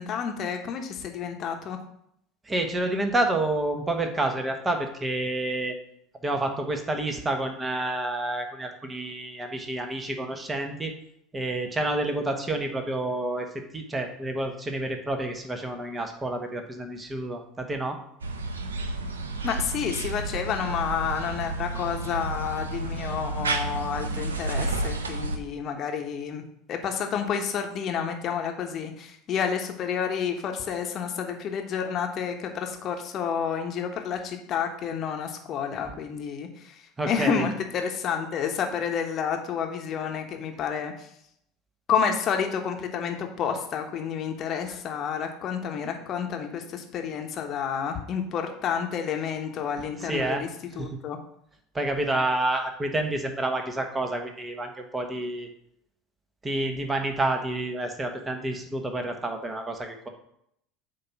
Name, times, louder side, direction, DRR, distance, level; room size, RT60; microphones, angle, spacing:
voice 1, 0.0-1.8 19.4-26.4 26.7-41.1 41.9-50.5 50.7-51.2, left 7 dB, 45° left, 4 dB, 1.1 m, -30 dB
voice 2, 2.5-5.8 6.2-10.9 11.3-13.5 13.7-18.0 37.0-37.5 50.0-50.4 50.8-50.9 51.7-55.5 56.4-60.1, right 2 dB, 20° right, 4 dB, 1.3 m, -29 dB
sound 1, 18.2-25.4, right 2 dB, 90° right, 0.6 m, -31 dB
8.3 x 2.9 x 5.9 m, 0.73 s
hypercardioid pair, 75°, 0 cm